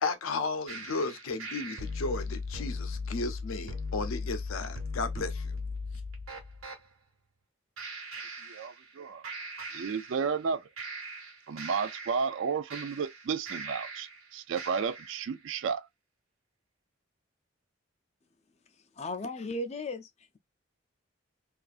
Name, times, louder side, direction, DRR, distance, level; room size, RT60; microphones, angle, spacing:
voice 1, 0.0-5.6, left 3 dB, 75° left, 0.5 m, -34 dB
sound 1, 0.7-6.8 7.8-9.0 9.2-10.5 10.8-14.2 14.6-15.2, left 1 dB, 85° right, 1.0 m, -38 dB
voice 2, 8.4-9.2 9.7-10.7 11.5-15.9, right 6 dB, 65° right, 0.3 m, -32 dB
voice 3, 19.0-20.1, left 2 dB, 30° left, 0.3 m, -35 dB
2.4 x 2.4 x 2.3 m
head